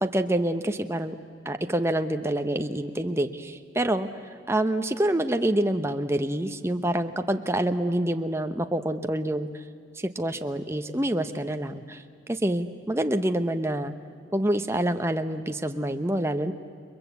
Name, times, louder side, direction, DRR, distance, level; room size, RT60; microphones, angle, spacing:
voice 1, 0.0-1.1 1.4-4.1 4.5-9.6 9.9-13.9 14.3-16.5, right 1 dB, 15° right, 7 dB, 0.9 m, -27 dB
29.5 x 22.0 x 8.2 m, 2.3 s
head